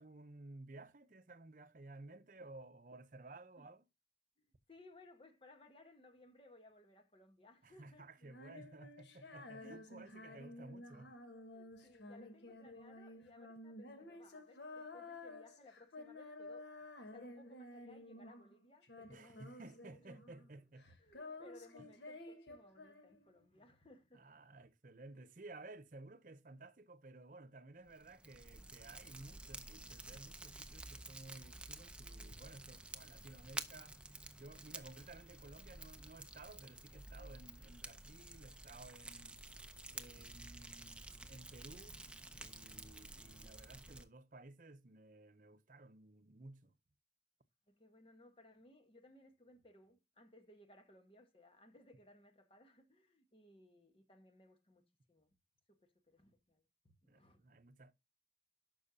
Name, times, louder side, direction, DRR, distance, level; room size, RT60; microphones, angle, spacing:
voice 1, 0.0-3.8 7.6-11.1 19.1-20.9 21.8-21.9 24.1-34.0 34.4-39.4 39.9-42.0 42.3-46.8 57.1-57.9, right 2 dB, 50° right, 0.7 m, -56 dB
voice 2, 4.4-8.2 9.5-9.8 10.2-10.7 11.5-16.7 17.0-20.1 20.8-24.2 24.5-24.7 32.2-32.4 47.7-55.3 55.7-57.4, left 2 dB, 30° left, 1.3 m, -63 dB
Female singing, 8.2-18.6 18.8-20.5 20.8-23.4, left 2 dB, 85° left, 1.5 m, -53 dB
Fire, 27.9-44.1, right 2 dB, 5° right, 0.5 m, -51 dB
11.5 x 5.5 x 2.7 m
head